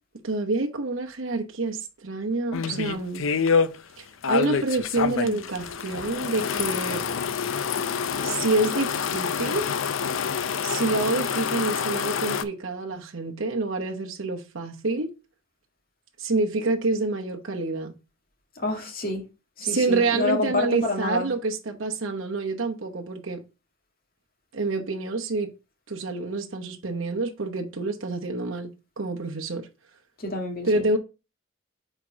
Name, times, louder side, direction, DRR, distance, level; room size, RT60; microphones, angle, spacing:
voice 1, 0.2-3.2 4.0-7.0 8.2-9.7 10.6-15.1 16.2-17.9 19.6-23.4 24.5-25.5 25.9-28.7 29.0-29.7 30.6-31.0, right 3 dB, 70° right, 1.0 m, -27 dB
sound 1, 2.5-3.7 4.2-12.4, left 6 dB, 75° left, 0.5 m, -27 dB
voice 2, 18.6-19.3 19.6-21.3 30.2-30.9, left 2 dB, 45° left, 2.0 m, -28 dB
4.5 x 4.3 x 5.7 m
head